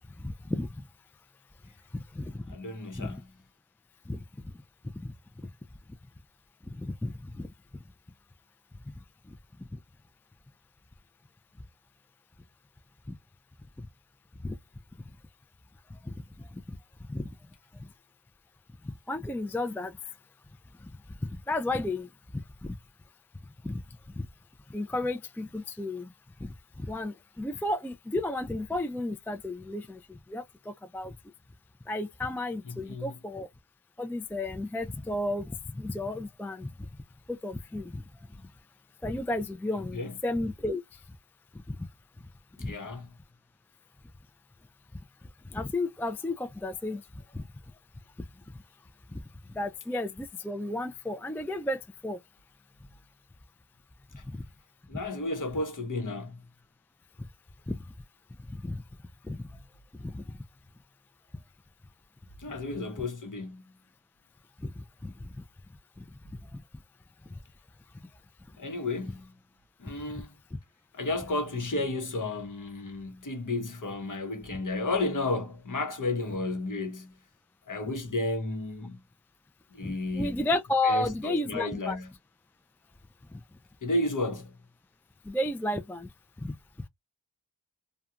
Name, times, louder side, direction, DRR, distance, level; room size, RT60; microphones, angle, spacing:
voice 1, 0.2-0.7 1.9-2.5 2.9-3.2 4.1-4.2 4.9-5.1 6.7-7.5 13.1-13.2 13.8-13.9 14.4-14.6 16.0-16.1 17.1-17.2 19.1-19.9 21.5-22.1 22.3-22.8 23.6-23.8 24.2-24.3 24.7-26.1 26.4-31.1 31.9-33.5 34.0-36.9 37.3-38.0 39.0-40.8 41.7-41.8 42.6-42.7 45.5-47.0 47.3-47.5 49.5-52.2 54.3-54.4 57.7-57.8 58.5-58.8 59.2-59.4 60.0-60.2 64.6-65.1 66.0-66.1 66.5-66.6 79.8-82.0 85.3-86.1 86.4-86.5, left 2 dB, 5° left, 0.3 m, -33 dB
voice 2, 2.5-3.3 32.6-33.2 38.4-38.5 39.8-40.2 42.6-43.2 54.2-54.3 54.9-56.4 62.4-63.7 68.6-69.4 69.8-70.3 70.9-77.2 77.7-79.0 79.7-80.4 80.8-82.1 83.8-84.6, left 2 dB, 45° left, 0.9 m, -33 dB
2.4 x 2.3 x 2.7 m
cardioid pair, 50°, 44 cm